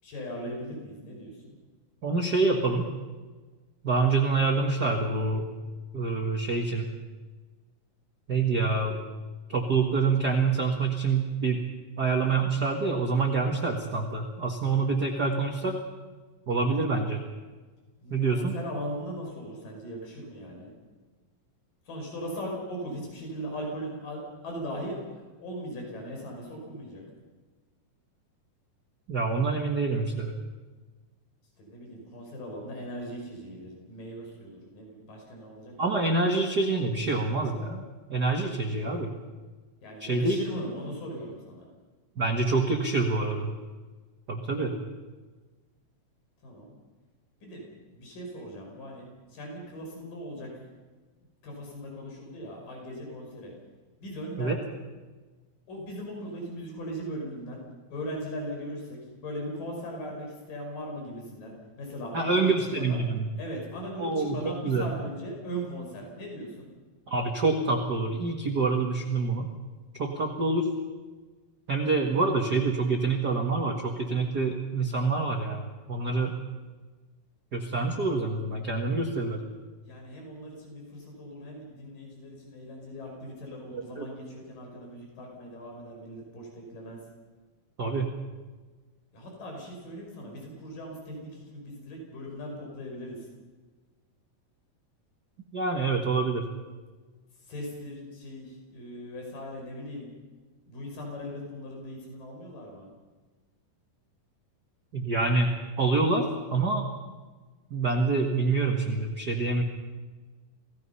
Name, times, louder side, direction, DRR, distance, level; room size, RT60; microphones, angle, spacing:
voice 1, 0.0-1.6 18.0-20.7 21.9-27.0 31.6-35.7 39.8-41.7 46.4-46.7 47.4-47.7 47.9-50.5 51.4-53.5 54.0-54.6 55.7-57.6 57.9-63.1 63.4-66.7 79.9-87.0 89.1-93.3 97.4-100.1 100.7-102.9, equal, 75° left, 0 dB, 6.7 m, -39 dB
voice 2, 2.0-2.9 3.8-5.5 5.9-6.8 8.3-9.0 9.5-11.6 12.0-15.8 16.5-17.2 18.1-18.5 29.1-30.3 35.8-37.8 38.1-39.1 40.0-40.4 42.2-43.5 44.3-44.8 54.4-54.5 62.1-63.3 64.0-64.9 67.1-69.5 70.0-70.7 71.7-75.6 75.9-76.4 77.5-79.4 83.7-84.1 87.8-88.1 95.5-96.5 104.9-106.9 107.7-109.6, right 3 dB, 40° right, 2 dB, 1.6 m, -26 dB
29.0 x 18.0 x 5.6 m, 1.3 s
omnidirectional pair, 3.9 m